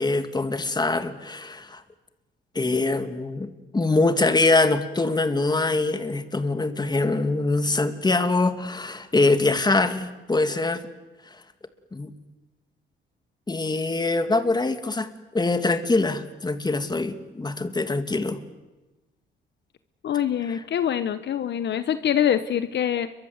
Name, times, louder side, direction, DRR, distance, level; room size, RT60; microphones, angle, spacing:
voice 1, 0.0-1.8 2.5-10.9 11.3-11.4 11.9-12.1 13.5-18.4 20.5-20.6, left 3 dB, 20° left, 9 dB, 2.5 m, -24 dB
voice 2, 20.0-23.1, left 9 dB, 60° left, 12 dB, 1.1 m, -24 dB
29.5 x 23.5 x 8.1 m, 1.1 s
cardioid pair, 90°, 20 cm